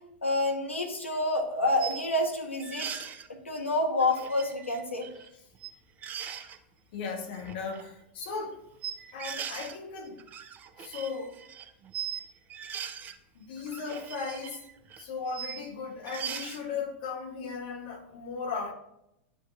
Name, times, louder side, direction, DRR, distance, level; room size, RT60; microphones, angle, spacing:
voice 1, 0.2-2.9 3.4-5.1, left 1 dB, 80° left, 3 dB, 1.1 m, -28 dB
sound 1, 1.1-1.2 1.8-2.1 2.6-3.3 4.0-5.3 5.5-5.7 6.0-6.6 7.3-7.8 8.8-9.8 10.1-12.2 12.5-13.2 13.6-15.6 16.0-16.6, right 8 dB, 25° right, 0.5 m, -40 dB
voice 2, 6.9-8.6 9.1-10.2 10.8-11.4 13.3-14.6 15.0-18.7, left 5 dB, 50° left, 3 dB, 1.2 m, -36 dB
10.5 x 4.0 x 2.5 m, 0.83 s
figure-of-eight pair, 95°, 7 cm